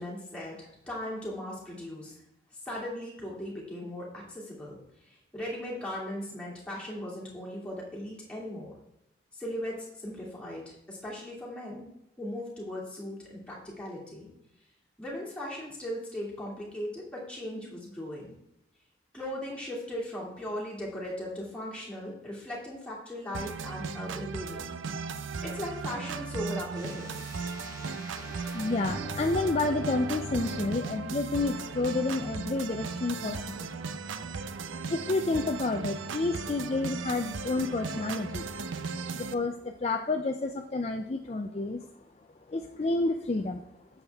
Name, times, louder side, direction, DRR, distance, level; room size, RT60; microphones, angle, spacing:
voice 1, 0.0-2.2 2.6-8.7 9.3-11.9 12.2-14.3 15.0-18.3 19.1-24.7 25.2-27.1, left 1 dB, 5° left, -5 dB, 2.5 m, -38 dB
sound 1, 23.3-39.3, right 4 dB, 85° right, 0.6 m, -37 dB
sound 2, 26.7-30.7 31.4-31.5, left 2 dB, 20° right, 2.4 m, -41 dB
voice 2, 28.2-33.7 34.7-38.5 39.1-41.9 42.5-43.6, left 2 dB, 35° left, 5 dB, 0.4 m, -30 dB
9.0 x 7.1 x 3.5 m, 0.84 s
head